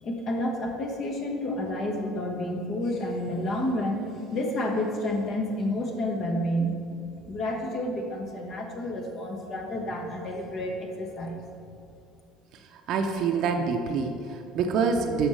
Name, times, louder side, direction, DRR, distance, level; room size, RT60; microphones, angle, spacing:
voice 1, 0.0-4.0 4.3-6.8 7.3-11.4, left 1 dB, 45° left, 2 dB, 1.4 m, -30 dB
voice 2, 12.9-15.3, right 5 dB, 55° right, 4 dB, 0.6 m, -26 dB
13.0 x 5.2 x 3.2 m, 2.7 s
figure-of-eight pair, 60°, 0 cm